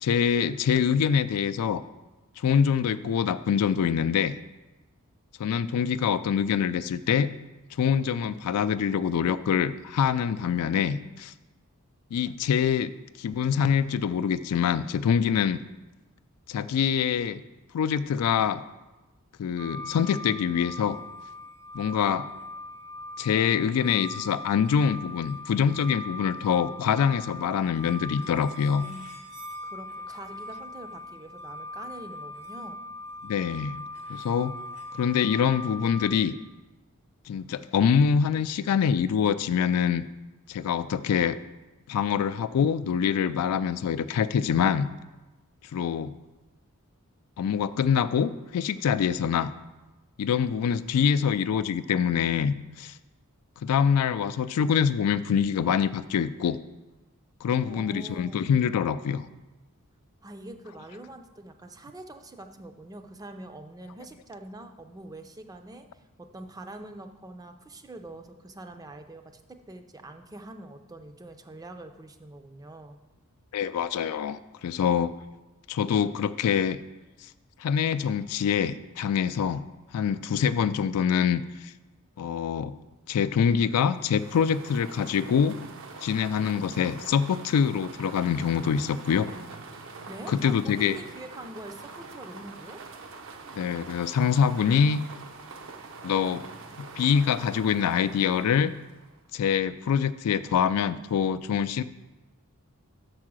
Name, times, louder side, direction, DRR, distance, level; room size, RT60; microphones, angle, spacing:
voice 1, 0.0-1.8 2.4-4.3 5.4-7.3 7.8-11.3 12.1-12.9 13.2-15.6 16.5-17.4 17.7-18.6 19.4-21.0 21.7-22.3 23.2-28.8 33.2-33.8 34.1-34.5 34.9-36.3 37.3-40.0 40.5-41.4 41.9-44.9 45.7-46.1 47.4-49.5 50.2-53.0 53.6-56.6 57.4-59.3 73.5-75.1 75.7-76.8 77.6-79.7 79.9-81.7 82.2-82.8 83.1-85.6 86.0-89.3 90.3-91.0 93.5-95.0 96.0-96.4 96.8-98.7 99.3-101.8, left 7 dB, 75° left, 14 dB, 0.3 m, -25 dB
sound 1, 19.6-36.1, left 1 dB, 90° right, 1.3 m, -40 dB
voice 2, 28.7-29.1 29.6-32.8 57.6-58.5 60.2-65.9 66.2-73.0 90.1-92.8, right 1 dB, 15° right, 6 dB, 0.4 m, -44 dB
sound 2, 83.8-99.3, right 4 dB, 60° right, 0.7 m, -44 dB
6.5 x 4.8 x 6.2 m, 1.1 s
head